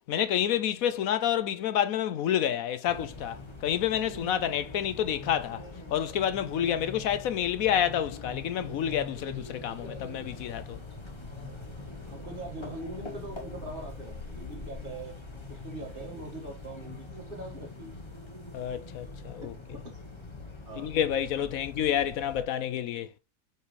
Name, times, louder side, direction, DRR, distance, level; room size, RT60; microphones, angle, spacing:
voice 1, 0.1-5.6 5.9-10.8 18.5-19.5 20.8-23.1, left 10 dB, 65° left, 0.9 m, -29 dB
sound 1, 2.9-22.4, left 3 dB, 20° left, 0.9 m, -43 dB
voice 2, 12.0-15.2 15.5-18.1 19.7-19.8 20.6-21.0 21.4-21.5, right 2 dB, 30° right, 2.0 m, -42 dB
6.0 x 5.6 x 3.3 m
omnidirectional pair, 1.8 m